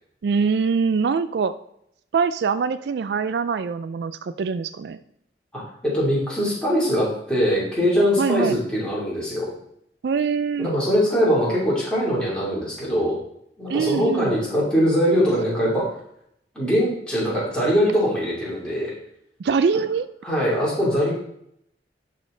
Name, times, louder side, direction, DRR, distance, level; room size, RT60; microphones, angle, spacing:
voice 1, 0.2-1.5 2.1-5.0 8.2-8.6 10.0-10.7 13.7-14.3 19.4-20.1, right 5 dB, 65° right, 12 dB, 0.3 m, -23 dB
voice 2, 5.5-9.5 10.6-13.2 13.6-16.0 16.5-18.9 20.2-21.1, equal, 5° left, -7 dB, 2.9 m, -22 dB
11.0 x 4.2 x 3.8 m, 0.73 s
head